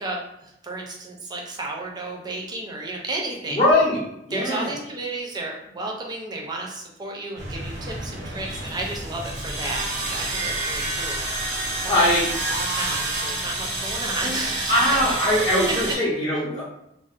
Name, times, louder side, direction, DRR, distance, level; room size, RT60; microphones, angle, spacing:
voice 1, 0.0-3.6 4.3-11.3 11.5-12.1 12.5-15.0 15.6-16.0, right 2 dB, 25° right, -1 dB, 0.4 m, -33 dB
voice 2, 3.5-4.0 4.3-4.7 11.9-12.3 14.7-16.6, left 1 dB, 30° left, -11 dB, 0.6 m, -21 dB
sound 1, 7.4-16.0, right 2 dB, 85° right, 0.6 m, -29 dB
2.5 x 2.0 x 2.3 m, 0.80 s
head